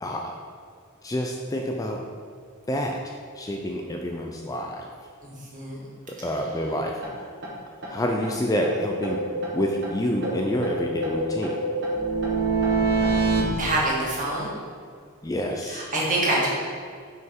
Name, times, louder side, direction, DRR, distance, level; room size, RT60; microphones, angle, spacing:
voice 1, 0.0-0.3 1.0-2.0 2.7-3.0 3.4-4.9 6.2-7.3 7.9-9.2 9.5-11.6 15.2-15.8, equal, 15° left, 1 dB, 0.4 m, -28 dB
voice 2, 5.2-5.9 13.6-14.5 15.6-16.5, right 1 dB, 35° right, -5 dB, 1.7 m, -26 dB
sound 1, 7.0-7.1 7.4-7.5 7.8-7.9 8.2-8.3 8.6-9.9 10.2-13.4, right 3 dB, 55° right, 1.6 m, -26 dB
6.2 x 5.7 x 4.5 m, 2.1 s
head